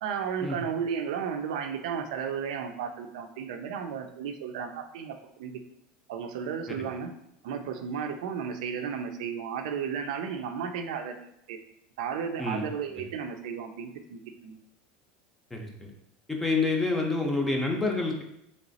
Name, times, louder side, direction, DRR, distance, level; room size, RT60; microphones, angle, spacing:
voice 1, 0.0-5.6 6.1-7.1 7.4-11.6 12.0-14.6, right 7 dB, 90° right, 6 dB, 0.5 m, -34 dB
voice 2, 15.5-15.9 16.3-18.2, left 3 dB, 5° left, 1 dB, 0.5 m, -28 dB
3.2 x 3.0 x 4.0 m, 0.78 s
supercardioid pair, 160°, 4 cm